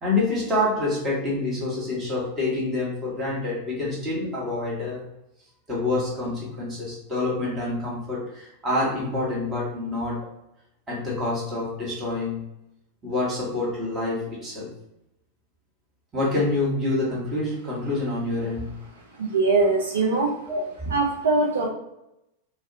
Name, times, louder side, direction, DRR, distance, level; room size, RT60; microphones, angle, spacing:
voice 1, 0.0-5.0 5.7-10.3 10.9-12.5 13.0-14.7 16.1-18.8 20.5-20.7, left 2 dB, 20° right, -6 dB, 1.1 m, -27 dB
voice 2, 18.9-20.5 20.9-21.7, right 3 dB, 70° right, -1 dB, 0.4 m, -22 dB
2.4 x 2.0 x 2.6 m, 0.86 s
figure-of-eight pair, 90°, 0 cm